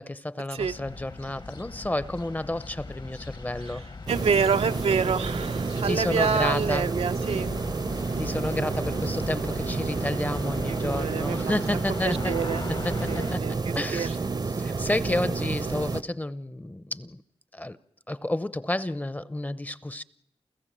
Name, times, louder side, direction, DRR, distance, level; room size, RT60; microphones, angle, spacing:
voice 1, 0.0-3.8 5.8-6.9 8.2-12.4 12.8-14.2 14.5-17.2 17.5-17.8 18.1-20.0, left 1 dB, 15° left, 0.7 m, -31 dB
sound 1, 0.6-13.4, left 3 dB, 50° left, 1.3 m, -39 dB
sound 2, 4.1-16.0, right 4 dB, 45° right, 0.7 m, -30 dB
voice 2, 4.1-7.5 10.7-11.5 12.0-12.6 13.1-13.6 13.9-14.1, right 6 dB, 85° right, 0.8 m, -27 dB
29.0 x 15.0 x 7.5 m
wide cardioid pair, 80°, 10 cm